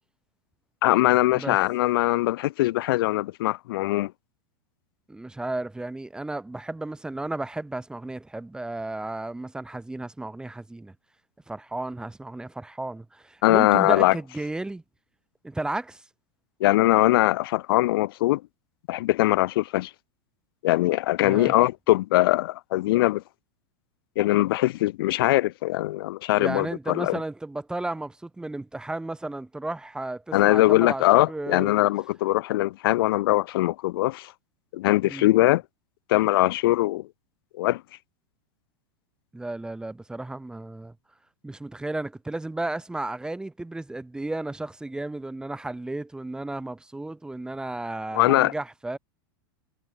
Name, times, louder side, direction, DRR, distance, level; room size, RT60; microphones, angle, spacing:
voice 1, 0.8-4.1 13.4-14.2 16.6-18.4 18.9-19.9 20.6-23.2 24.2-27.2 30.3-34.3 34.7-35.6 36.1-37.1 37.6-37.8 48.1-48.5, left 17 dB, 70° left, 2.1 m, -21 dB
voice 2, 5.1-10.9 11.5-14.8 15.4-16.0 21.2-21.6 26.4-31.7 35.1-35.3 39.3-40.9 41.4-49.0, right 2 dB, 5° right, 1.9 m, -33 dB
supercardioid pair, 125°, 13 cm